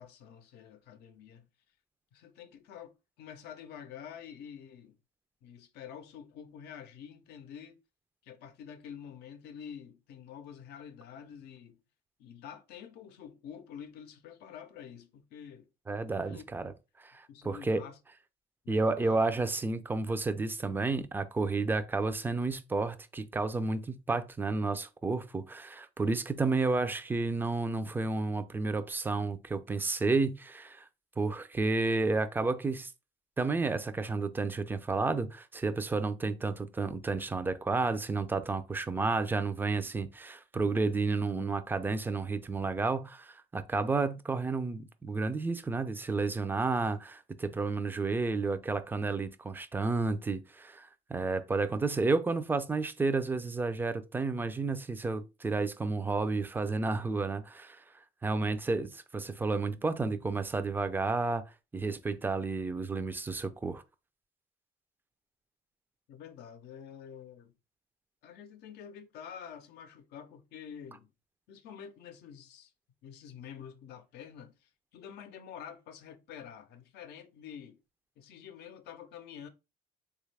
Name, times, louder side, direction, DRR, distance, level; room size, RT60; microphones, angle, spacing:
voice 1, 0.0-1.5 2.1-5.0 5.4-7.8 8.2-11.8 12.2-15.7 16.2-16.4 17.3-18.0 18.6-19.2 66.1-67.5 68.2-71.1 71.5-72.7 73.0-77.8 78.2-79.5, left 8 dB, 75° left, 0.6 m, -48 dB
voice 2, 15.9-16.7 17.0-17.8 18.7-30.8 31.2-32.9 33.4-57.8 58.2-61.4 61.7-63.8, right 3 dB, 10° right, 0.3 m, -31 dB
3.3 x 2.4 x 3.2 m
cardioid pair, 110°, 17 cm